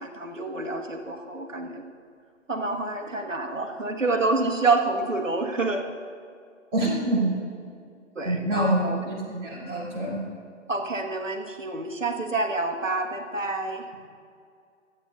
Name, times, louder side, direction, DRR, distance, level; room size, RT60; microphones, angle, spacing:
voice 1, 0.0-1.9 2.5-5.9 8.1-9.1 10.7-13.8, right 3 dB, 75° right, 4 dB, 1.5 m, -28 dB
voice 2, 6.7-7.3 8.2-10.2, right 1 dB, 20° right, -9 dB, 2.6 m, -26 dB
25.5 x 9.0 x 2.4 m, 2.3 s
figure-of-eight pair, 140°, 39 cm